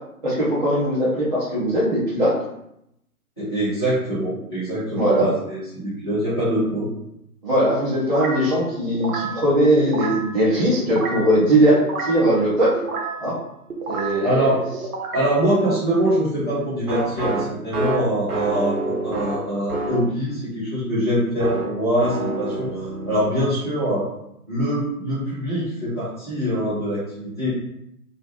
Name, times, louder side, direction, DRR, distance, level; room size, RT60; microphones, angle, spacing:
voice 1, 0.2-2.3 4.9-5.3 7.4-12.8 13.2-13.3 13.9-14.6, right 1 dB, 30° right, -10 dB, 0.6 m, -20 dB
voice 2, 3.4-6.9 14.2-14.6 15.1-24.1 24.5-27.5, right 1 dB, 20° left, -12 dB, 0.5 m, -23 dB
sound 1, 8.1-8.5 8.9-9.4 9.8-10.3 10.8-11.3 11.8-12.3 12.8-13.2 13.7-14.2 14.7-15.4 16.9-20.1 21.4-23.3, right 2 dB, 70° right, 0.7 m, -28 dB
2.4 x 2.0 x 2.8 m, 0.80 s
figure-of-eight pair, 135°, 46 cm